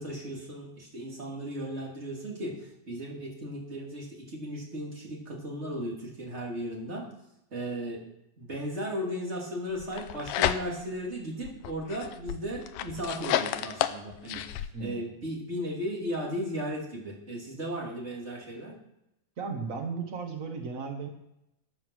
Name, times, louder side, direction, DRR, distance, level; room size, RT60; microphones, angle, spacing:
voice 1, 0.0-7.1 7.5-8.0 8.4-14.4 14.8-18.7, equal, 20° right, -2 dB, 2.9 m, -36 dB
sound 1, 9.8-11.0 11.4-14.7, left 12 dB, 75° left, 2.1 m, -31 dB
voice 2, 19.4-21.1, right 5 dB, 80° right, 3 dB, 0.7 m, -35 dB
14.5 x 8.9 x 6.2 m, 0.86 s
omnidirectional pair, 4.0 m